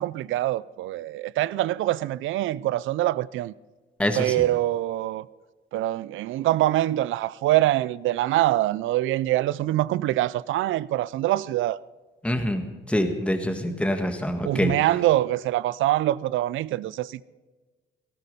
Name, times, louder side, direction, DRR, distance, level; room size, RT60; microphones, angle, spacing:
voice 1, 0.0-3.5 4.2-5.2 5.7-11.8 14.4-17.2, right 15 dB, 80° right, 0.5 m, -24 dB
voice 2, 4.0-4.3 12.2-12.6 12.9-14.7, left 1 dB, 5° left, 1.6 m, -25 dB
18.0 x 13.5 x 5.4 m
cardioid pair, 90°, 20 cm